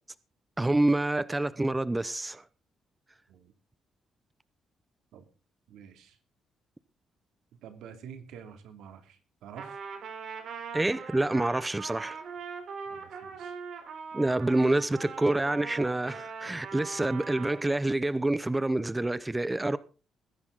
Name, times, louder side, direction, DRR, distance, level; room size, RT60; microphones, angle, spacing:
voice 1, 0.6-2.4 10.7-12.2 14.1-19.8, right 2 dB, 15° right, 0.7 m, -27 dB
voice 2, 5.7-6.2 7.6-9.8 12.9-13.5, right 8 dB, 85° right, 2.8 m, -48 dB
Trumpet, 9.6-17.7, right 6 dB, 65° right, 3.8 m, -41 dB
21.0 x 10.5 x 4.0 m
cardioid pair, 90°, 0 cm